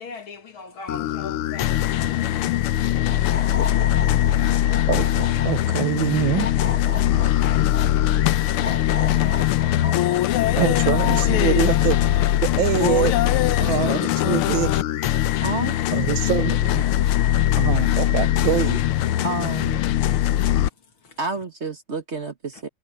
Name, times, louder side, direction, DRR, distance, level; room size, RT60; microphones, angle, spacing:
voice 1, 0.0-2.4 3.0-4.2 20.4-20.7 21.0-21.2, left 4 dB, 70° left, 3.0 m, -42 dB
sound 1, 0.9-20.7, left 13 dB, 90° left, 1.6 m, -21 dB
sound 2, 2.9-5.8 6.3-7.9 8.5-10.8, left 4 dB, 35° left, 1.3 m, -34 dB
voice 2, 4.9-6.5 10.6-12.0 12.4-13.1 13.6-14.8 15.9-16.8 17.6-18.8, right 14 dB, 75° right, 1.3 m, -24 dB
voice 3, 15.4-15.8 19.2-19.8 21.2-22.7, right 4 dB, 35° right, 1.5 m, -29 dB
omnidirectional pair, 2.3 m